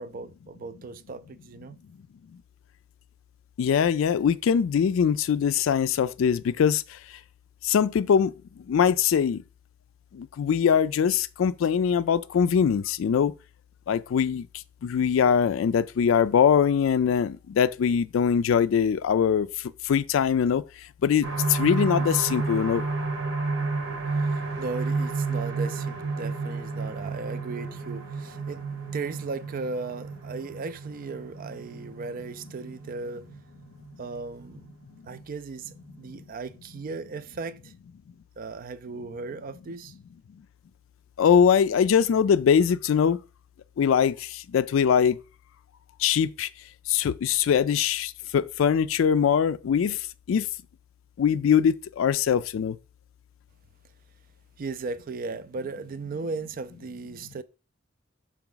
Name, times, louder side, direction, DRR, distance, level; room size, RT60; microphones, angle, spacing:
voice 1, 0.0-1.8 24.2-28.6 28.9-33.3 34.0-34.7 35.0-37.7 38.4-39.9 54.6-57.4, right 4 dB, 45° right, 0.4 m, -36 dB
voice 2, 3.6-7.0 7.6-9.4 10.1-13.3 13.9-14.5 14.8-20.6 21.0-22.8 41.2-43.2 43.8-45.2 46.0-46.5 46.9-50.5 51.2-52.8, left 7 dB, 80° left, 0.3 m, -22 dB
sound 1, 21.2-34.7 35.2-35.3 35.7-35.8, right 3 dB, 80° right, 1.4 m, -31 dB
5.8 x 4.7 x 3.8 m
head